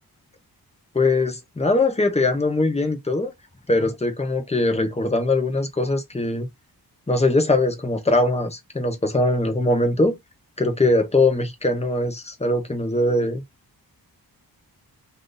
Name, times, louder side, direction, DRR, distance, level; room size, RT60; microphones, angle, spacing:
voice 1, 0.9-3.3 3.7-6.5 7.1-10.2 10.6-13.4, left 2 dB, 15° left, 0.9 m, -21 dB
2.6 x 2.5 x 3.8 m
wide cardioid pair, 95°, 38 cm